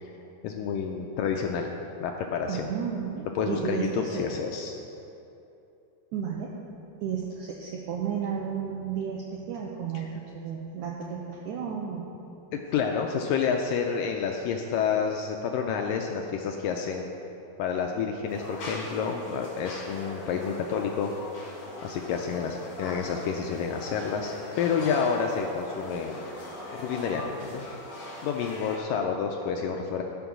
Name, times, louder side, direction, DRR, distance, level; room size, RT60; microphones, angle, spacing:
voice 1, 0.4-1.7 2.0-2.7 3.4-4.7 9.9-10.1 12.5-17.1 17.6-21.1 21.8-26.2 26.7-27.6 28.2-30.0, left 6 dB, 80° left, 2 dB, 2.0 m, -29 dB
voice 2, 2.5-4.2 6.1-6.5 7.0-12.1, right 7 dB, 85° right, -1 dB, 1.7 m, -33 dB
sound 1, 18.3-28.8, left 1 dB, 45° left, 3.4 m, -40 dB
15.0 x 6.1 x 6.1 m, 2.8 s
omnidirectional pair, 4.4 m